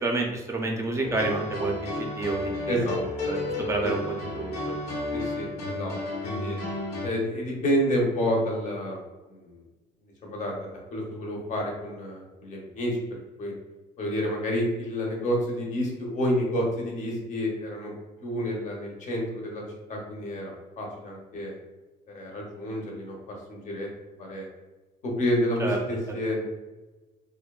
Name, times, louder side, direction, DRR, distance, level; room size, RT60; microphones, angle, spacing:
voice 1, 0.0-2.8 3.3-4.7 25.6-25.8, right 3 dB, 15° right, 1 dB, 0.4 m, -29 dB
sound 1, 1.0-7.1, left 2 dB, 90° left, 1.1 m, -32 dB
voice 2, 2.7-3.0 3.8-3.9 5.1-5.9 6.2-6.6 7.0-9.0 9.3-9.6 10.2-13.5 14.0-17.9 18.2-19.6 19.9-21.5 22.1-23.1 23.5-23.9 24.2-24.5 25.0-26.5, equal, 45° left, -1 dB, 0.8 m, -29 dB
2.6 x 2.1 x 2.3 m, 1.2 s
cardioid pair, 110°, 17 cm